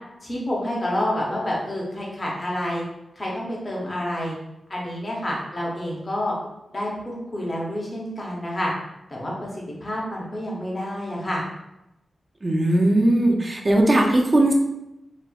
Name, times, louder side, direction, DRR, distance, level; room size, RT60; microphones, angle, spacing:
voice 1, 0.2-2.8 3.2-4.4 4.7-6.3 6.7-8.7 9.1-9.5 9.8-11.4, left 1 dB, 25° left, -4 dB, 0.6 m, -28 dB
voice 2, 12.4-14.5, right 1 dB, 25° right, 1 dB, 0.3 m, -19 dB
4.0 x 2.0 x 2.3 m, 0.90 s
wide cardioid pair, 170°, 0 cm